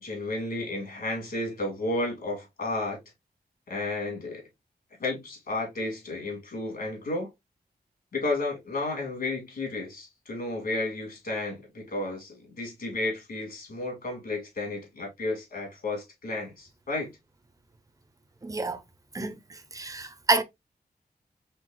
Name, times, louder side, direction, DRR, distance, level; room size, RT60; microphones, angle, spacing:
voice 1, 0.0-3.0 3.7-4.4 5.0-7.3 8.1-17.1, left 2 dB, 70° left, 2.2 m, -32 dB
voice 2, 18.4-18.8 19.1-19.4 19.7-20.4, right 3 dB, 20° right, 0.6 m, -27 dB
4.5 x 3.3 x 2.4 m
wide cardioid pair, 100°, 16 cm